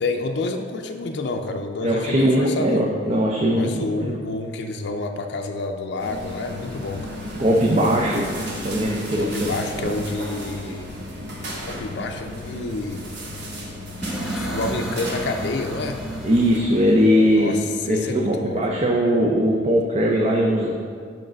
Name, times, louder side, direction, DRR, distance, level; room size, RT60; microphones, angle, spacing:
voice 1, 0.0-2.9 3.5-7.2 9.1-10.9 11.7-13.0 14.3-16.0 17.3-18.8, left 2 dB, 60° left, 4 dB, 0.4 m, -29 dB
voice 2, 1.8-4.2 7.4-8.2 8.6-9.5 9.8-10.0 16.2-17.6 17.9-20.7, equal, 35° right, -2 dB, 0.5 m, -20 dB
sound 1, 6.0-16.6, equal, 60° right, 1.1 m, -34 dB
sound 2, 14.0-17.9, right 1 dB, 5° right, 0.9 m, -32 dB
5.3 x 4.8 x 6.1 m, 2.2 s
head